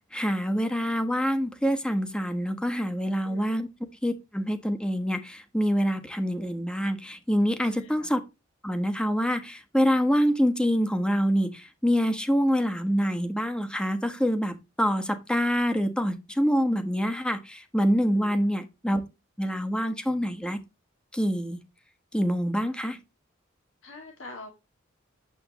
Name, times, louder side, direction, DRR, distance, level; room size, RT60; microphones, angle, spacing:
voice 1, 0.1-3.7 4.0-8.2 8.6-19.0 19.4-20.6 21.1-21.6 22.1-23.0, equal, 5° left, 1.3 m, -26 dB
voice 2, 3.2-3.6 7.6-8.1 18.1-18.5 23.8-24.5, left 2 dB, 70° left, 2.2 m, -45 dB
9.6 x 7.8 x 3.0 m
head